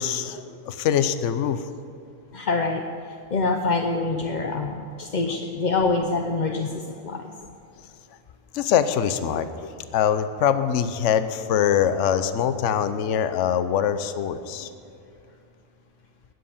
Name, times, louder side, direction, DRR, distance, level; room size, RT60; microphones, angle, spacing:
voice 1, 0.0-1.6 8.5-14.7, left 9 dB, 65° left, 11 dB, 1.0 m, -23 dB
voice 2, 2.3-2.8 3.3-7.3 14.6-14.7, left 3 dB, 40° left, 3 dB, 0.7 m, -25 dB
19.5 x 7.8 x 7.1 m, 2.4 s
omnidirectional pair, 1.4 m